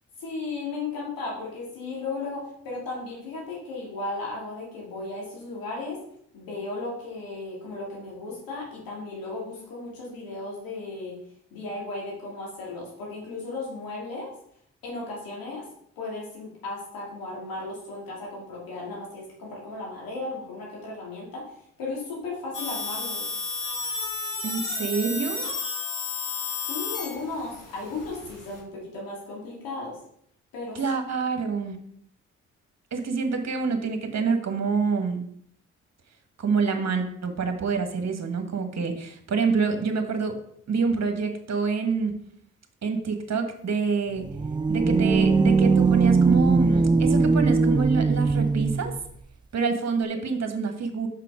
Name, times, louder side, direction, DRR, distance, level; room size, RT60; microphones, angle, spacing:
voice 1, 0.2-6.0 6.3-11.2 11.5-14.3 14.8-15.6 16.0-21.5 21.8-23.2 26.7-30.0 30.5-30.8, left 3 dB, 85° left, -4 dB, 2.9 m, -35 dB
sound 1, 22.5-28.6, left 3 dB, 65° left, 2.1 m, -32 dB
voice 2, 24.4-25.5 30.7-31.8 32.9-35.2 36.4-40.4 40.7-42.1 42.8-44.2 44.7-48.9 49.5-51.1, right 5 dB, 50° right, 5 dB, 1.6 m, -27 dB
sound 2, 44.2-49.0, right 4 dB, 15° right, 0.4 m, -20 dB
5.8 x 5.7 x 5.0 m, 0.68 s
supercardioid pair, 50°, 34 cm